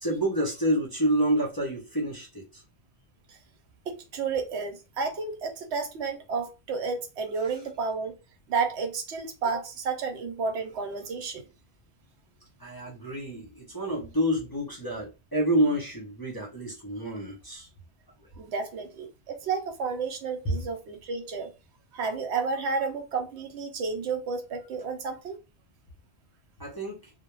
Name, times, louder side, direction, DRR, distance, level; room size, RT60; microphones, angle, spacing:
voice 1, 0.0-2.6 12.6-17.7 20.4-20.5 26.6-27.1, right 1 dB, 25° left, 0.5 m, -28 dB
voice 2, 3.9-8.1 8.5-11.4 18.4-21.5 21.9-25.4, right 5 dB, 80° right, 0.9 m, -31 dB
2.2 x 2.0 x 3.0 m
omnidirectional pair, 1.2 m